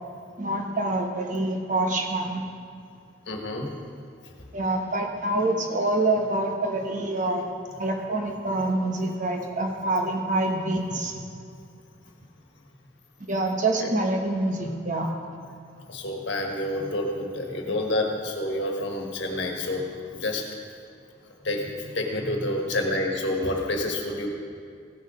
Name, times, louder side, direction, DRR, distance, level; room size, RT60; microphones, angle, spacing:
voice 1, 0.4-2.4 4.5-7.5 7.8-11.2 13.3-15.1, right 2 dB, 40° right, 3 dB, 1.1 m, -26 dB
voice 2, 3.3-3.7 8.5-8.7 13.8-14.0 15.9-20.4 21.4-24.3, left 1 dB, 65° left, 1 dB, 1.5 m, -28 dB
16.0 x 6.3 x 5.1 m, 2.3 s
head